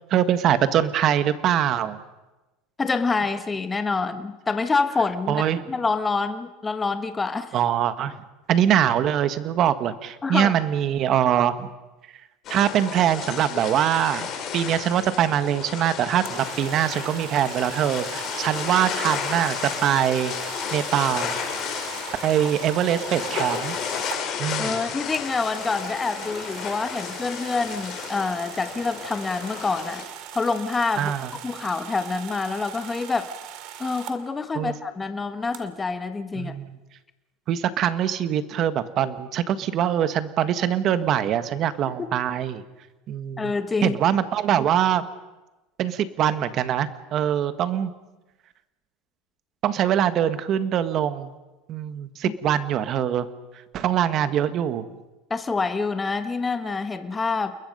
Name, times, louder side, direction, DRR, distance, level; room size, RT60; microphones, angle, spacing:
voice 1, 0.1-2.0 5.3-5.6 7.5-8.2 8.5-11.7 12.5-14.3 14.5-20.3 20.7-21.4 22.2-23.8 24.4-24.8 31.0-31.3 34.5-34.7 36.3-36.8 37.5-42.6 43.1-43.5 43.8-45.1 45.8-47.9 49.6-51.3 51.7-53.3 53.7-54.9, right 10 dB, 45° right, 12 dB, 1.4 m, -23 dB
voice 2, 2.8-5.4 5.7-7.5 10.2-10.5 24.6-30.0 30.3-31.1 31.4-33.3 33.8-36.5 42.0-42.1 43.4-44.0 55.3-57.5, left 4 dB, 15° left, 9 dB, 1.3 m, -26 dB
sound 1, 12.4-30.0, left 7 dB, 40° left, 4.8 m, -33 dB
sound 2, 16.2-24.2 25.1-34.2 35.5-35.6, right 11 dB, 60° right, 2.3 m, -40 dB
29.0 x 21.5 x 5.5 m, 1.1 s
supercardioid pair, 130°, 0 cm